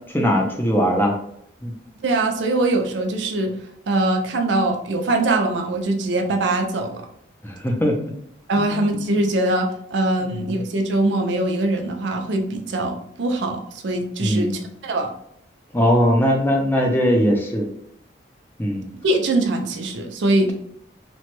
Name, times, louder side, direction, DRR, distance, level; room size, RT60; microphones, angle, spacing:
voice 1, 0.1-1.2 1.6-1.7 7.4-8.1 8.6-8.8 14.2-14.6 15.7-17.7 18.6-18.9, equal, 10° left, 1 dB, 0.4 m, -20 dB
voice 2, 2.0-3.5 3.9-7.0 8.5-15.1 19.0-20.5, right 2 dB, 80° right, 3 dB, 0.5 m, -22 dB
2.9 x 2.2 x 3.0 m, 0.69 s
head